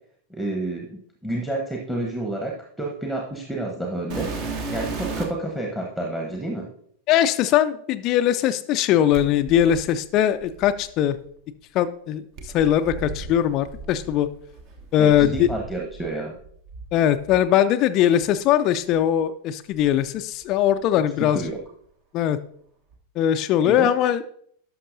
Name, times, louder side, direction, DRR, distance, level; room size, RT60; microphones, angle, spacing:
voice 1, 0.3-6.7 15.0-16.4 21.3-21.6 23.6-23.9, right 1 dB, ahead, 1 dB, 1.0 m, -30 dB
sound 1, 4.1-5.5 6.4-6.5 9.1-11.2 12.4-16.1 16.4-17.4 18.2-18.3 18.9-19.0 19.7-20.8 21.1-21.6 22.9-23.0, right 4 dB, 45° right, 1.2 m, -35 dB
voice 2, 7.1-11.2 11.7-14.3 14.9-15.5 16.9-21.4 22.1-22.4 23.2-24.2, left 10 dB, 40° left, 10 dB, 0.3 m, -20 dB
11.5 x 5.9 x 2.6 m, 0.64 s
figure-of-eight pair, 90°, 0 cm